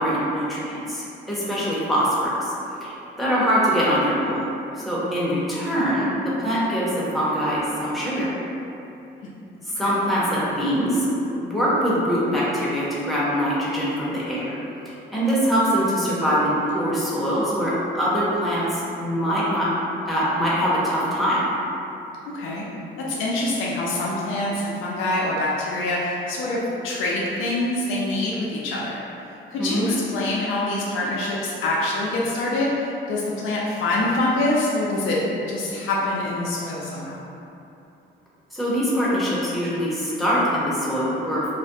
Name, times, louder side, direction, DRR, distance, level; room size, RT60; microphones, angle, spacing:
voice 1, 0.0-2.1 2.4-2.5 2.8-4.5 4.8-8.3 9.8-14.6 14.8-19.7 20.1-21.4 29.6-29.9 38.5-41.5, equal, ahead, -9 dB, 0.7 m, -23 dB
voice 2, 22.3-22.7 23.1-29.0 29.5-35.2 35.5-37.2, left 2 dB, 80° left, -5 dB, 0.4 m, -25 dB
2.4 x 2.1 x 2.6 m, 2.8 s
cardioid pair, 90°, 20 cm